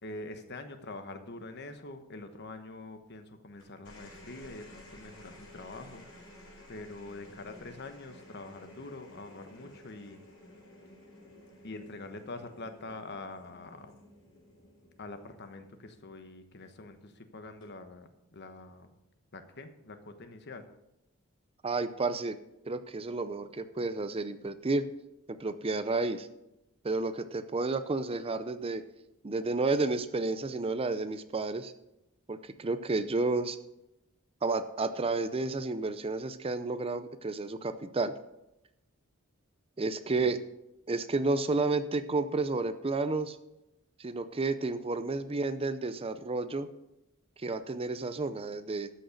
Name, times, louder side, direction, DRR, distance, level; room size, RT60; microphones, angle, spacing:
voice 1, 0.0-6.1 6.7-10.2 11.6-13.9 15.0-18.9 19.3-20.7 40.2-40.3, left 2 dB, 55° left, 8 dB, 1.2 m, -45 dB
sound 1, 3.6-16.2 17.4-17.9, left 1 dB, 80° left, 4.5 m, -54 dB
voice 2, 21.6-22.4 22.6-24.8 25.3-26.3 26.8-28.8 29.2-31.7 32.3-33.6 34.4-38.1 39.8-40.4 40.9-43.4 44.0-46.7 47.4-48.9, right 3 dB, 30° right, 12 dB, 0.6 m, -31 dB
13.0 x 6.3 x 6.5 m, 0.89 s
head